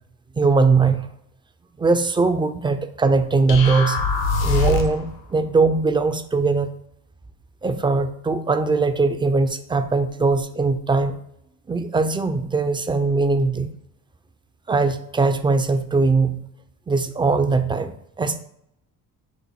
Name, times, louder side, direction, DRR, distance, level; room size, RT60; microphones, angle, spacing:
voice 1, 0.3-1.1 1.8-4.0 4.4-6.7 7.6-11.1 11.7-13.7 14.7-16.5 16.9-18.4, right 4 dB, 15° right, 9 dB, 0.3 m, -20 dB
sound 1, 3.5-5.1, left 4 dB, 80° left, 0.8 m, -22 dB
5.4 x 2.3 x 4.1 m, 0.75 s
supercardioid pair, 75°, 37 cm